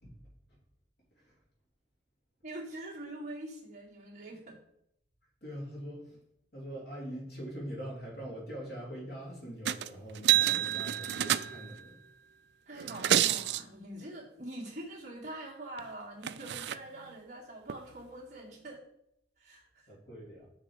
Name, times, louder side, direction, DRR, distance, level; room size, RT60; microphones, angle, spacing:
voice 1, 2.4-4.6 12.7-18.8 19.4-19.9, right 1 dB, 45° right, -6 dB, 2.3 m, -44 dB
voice 2, 5.4-6.2 6.5-12.0 19.9-20.5, equal, 65° left, -4 dB, 3.6 m, -43 dB
sound 1, 9.7-9.9 10.2-11.8 12.8-13.6 15.8-15.9 16.2-16.8 17.7-17.8, right 12 dB, 70° right, 0.4 m, -28 dB
6.3 x 6.0 x 4.9 m, 0.74 s
head